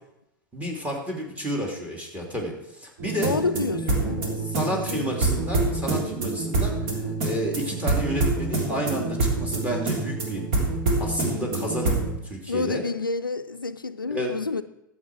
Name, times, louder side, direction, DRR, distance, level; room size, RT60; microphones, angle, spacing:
voice 1, 0.5-3.3 4.0-4.1 4.4-10.4 11.0-12.8 14.1-14.5, equal, 15° right, 2.7 m, -31 dB
sound 1, 3.0-12.2, right 2 dB, 45° right, 3.4 m, -26 dB
voice 2, 3.2-4.4 4.9-5.2 12.5-14.6, left 3 dB, 90° left, 0.4 m, -29 dB
13.0 x 8.0 x 4.6 m
figure-of-eight pair, 90°, 11 cm